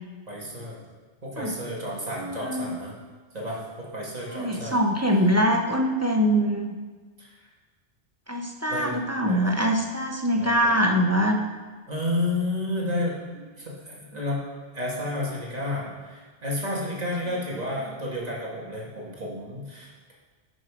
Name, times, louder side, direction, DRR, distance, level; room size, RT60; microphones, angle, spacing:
voice 1, 0.3-0.8 1.2-2.9 3.3-4.8 7.2-7.4 8.7-9.0 9.2-9.7 10.3-10.8 11.9-13.3 13.6-14.5 14.7-20.1, left 1 dB, 35° right, -4 dB, 2.2 m, -31 dB
voice 2, 2.2-2.7 4.3-6.8 8.3-11.4, equal, 15° right, 1 dB, 0.6 m, -23 dB
10.5 x 6.4 x 5.0 m, 1.4 s
omnidirectional pair, 1.1 m